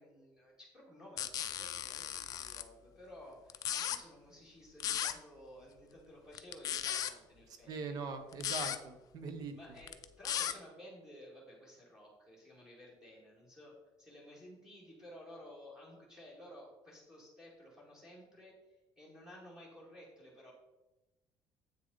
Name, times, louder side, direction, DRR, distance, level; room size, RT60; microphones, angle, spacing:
voice 1, 0.0-8.0 9.5-20.5, equal, 5° right, -4 dB, 2.0 m, -55 dB
sound 1, 1.2-2.6 3.5-4.0 4.8-5.1 6.3-7.1 8.3-8.8 9.8-10.5, left 11 dB, 45° left, 0.5 m, -36 dB
voice 2, 7.7-9.5, right 4 dB, 45° right, 7 dB, 1.1 m, -41 dB
8.2 x 6.6 x 4.0 m, 1.0 s
cardioid pair, 175°, 9 cm